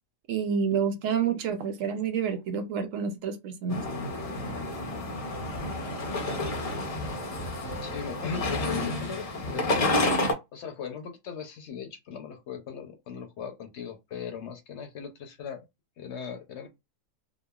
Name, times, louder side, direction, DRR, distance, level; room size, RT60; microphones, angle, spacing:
voice 1, 0.3-3.8, right 6 dB, 75° right, 0.9 m, -28 dB
sound 1, 3.7-10.3, left 2 dB, 45° left, 0.4 m, -30 dB
voice 2, 7.8-10.0 10.5-15.6 16.0-16.7, left 7 dB, 65° left, 0.8 m, -38 dB
2.9 x 2.2 x 2.2 m
omnidirectional pair, 1.4 m